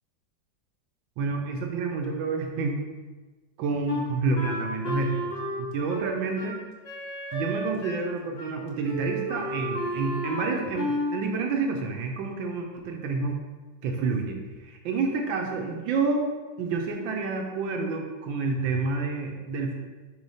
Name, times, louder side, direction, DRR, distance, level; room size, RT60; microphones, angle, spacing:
voice 1, 1.2-2.8 3.6-5.3 5.6-6.6 7.3-13.4 13.8-16.2 16.6-19.7, right 4 dB, 85° right, 2 dB, 1.6 m, -29 dB
Wind instrument woodwind instrument, 3.9-8.1 8.4-8.6 8.8-11.2, equal, 40° left, 1.1 m, -32 dB
4.8 x 4.8 x 5.5 m, 1.3 s
omnidirectional pair, 2.0 m